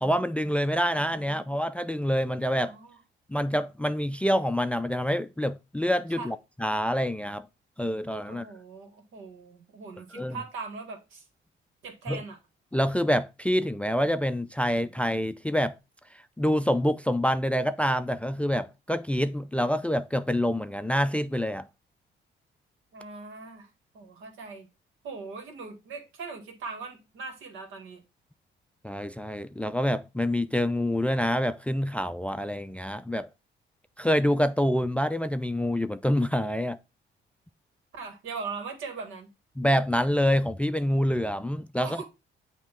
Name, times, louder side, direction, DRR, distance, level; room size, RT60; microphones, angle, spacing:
voice 1, 0.0-2.7 3.3-7.5 7.8-8.5 10.1-10.4 12.1-12.2 12.7-15.8 16.4-21.7 28.8-33.3 34.0-36.8 39.6-42.0, equal, 5° left, 0.3 m, -26 dB
voice 2, 0.9-1.5 2.6-3.0 6.1-6.3 8.2-11.2 11.8-12.4 22.9-23.7 23.9-24.7 25.0-28.0 37.9-39.3 41.8-42.0, right 4 dB, 85° right, 1.8 m, -40 dB
8.1 x 3.0 x 4.4 m
cardioid pair, 90°, 20 cm